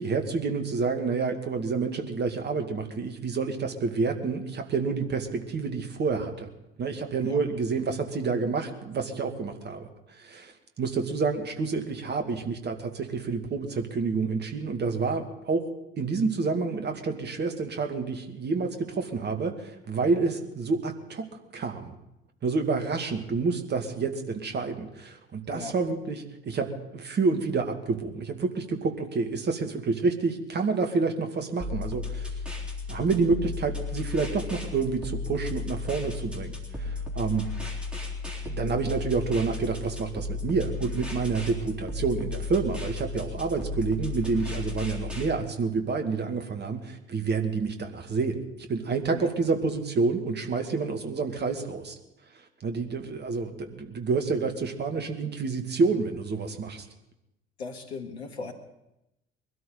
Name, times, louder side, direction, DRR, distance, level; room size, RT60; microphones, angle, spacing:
voice 1, 0.0-6.5 6.8-15.7 16.0-21.3 21.5-21.9 22.4-32.4 32.9-37.5 38.4-51.9 52.6-56.9, right 4 dB, 30° right, 5 dB, 2.1 m, -28 dB
sound 1, 31.6-45.3, left 3 dB, 5° right, 3.9 m, -34 dB
voice 2, 57.6-58.5, left 4 dB, 75° left, 4 dB, 2.0 m, -38 dB
23.5 x 13.0 x 4.0 m, 0.88 s
figure-of-eight pair, 60°, 32 cm